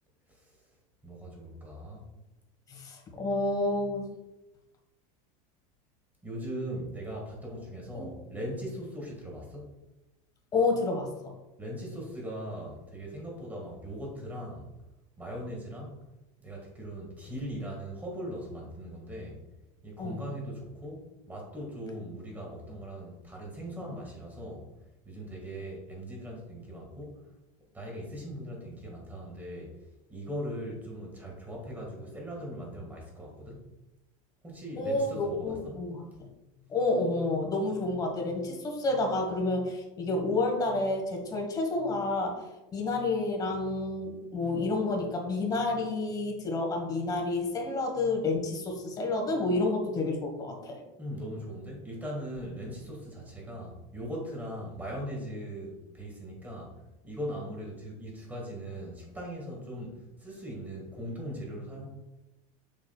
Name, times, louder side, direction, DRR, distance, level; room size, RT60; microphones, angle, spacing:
voice 1, 1.0-2.0 6.2-9.8 11.6-14.7 15.2-16.0 16.4-19.4 19.8-24.7 25.1-27.2 27.7-29.7 30.1-33.7 34.4-35.8 51.0-56.7 57.0-61.9, equal, 10° right, -2 dB, 1.8 m, -39 dB
voice 2, 2.7-4.1 7.9-8.1 10.5-11.3 20.0-20.2 34.8-36.3 36.7-42.4 42.7-50.8, left 2 dB, 20° left, 2 dB, 1.3 m, -29 dB
7.1 x 6.2 x 2.3 m, 0.99 s
supercardioid pair, 160°, 18 cm